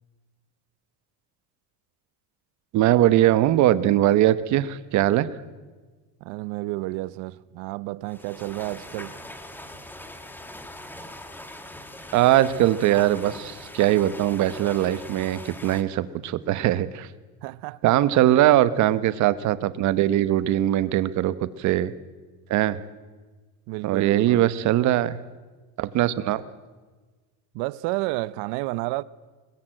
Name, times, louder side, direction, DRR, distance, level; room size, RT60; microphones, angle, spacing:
voice 1, 2.7-5.3 12.1-17.1 17.8-21.9 22.5-22.8 23.8-25.2 25.8-26.4, right 13 dB, 45° right, 0.9 m, -21 dB
voice 2, 6.2-9.1 17.4-17.8 23.7-24.5 27.5-29.0, right 20 dB, 75° right, 0.8 m, -31 dB
sound 1, 8.0-15.8, left 1 dB, 5° left, 1.2 m, -41 dB
21.0 x 21.0 x 7.7 m
cardioid pair, 170°, 40 cm